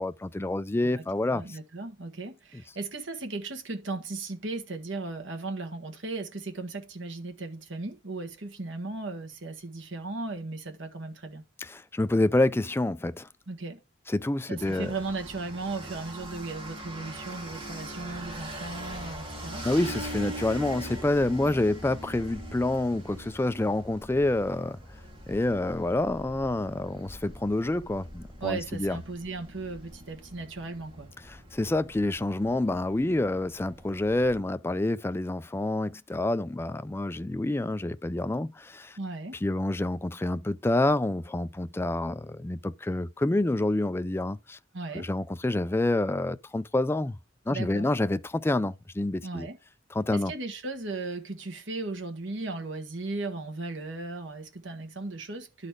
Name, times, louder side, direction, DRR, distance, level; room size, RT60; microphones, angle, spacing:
voice 1, 0.0-1.6 11.6-13.3 14.1-14.9 19.6-24.8 25.3-29.0 31.3-39.0 39.4-44.6 44.9-47.2 47.5-49.5 49.9-50.3, left 2 dB, 10° left, 0.3 m, -28 dB
voice 2, 1.3-11.4 13.5-13.8 14.5-19.6 28.4-31.1 39.0-39.4 44.7-45.1 47.5-47.9 49.2-49.6 50.1-55.7, right 3 dB, 65° right, 1.7 m, -36 dB
sound 1, 14.6-34.4, right 1 dB, 25° right, 2.9 m, -42 dB
11.0 x 4.1 x 4.8 m
head